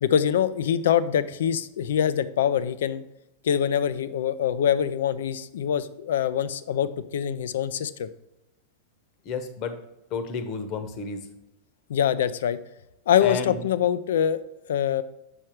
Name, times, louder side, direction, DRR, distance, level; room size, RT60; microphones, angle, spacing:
voice 1, 0.0-3.0 3.4-8.1 11.9-12.6 13.1-14.4 14.7-15.0, left 9 dB, 60° left, 15 dB, 0.4 m, -24 dB
voice 2, 9.2-9.7 10.1-11.3 13.2-13.6, left 5 dB, 40° left, 9 dB, 1.0 m, -31 dB
7.8 x 6.3 x 3.0 m, 0.91 s
figure-of-eight pair, 90°, 0 cm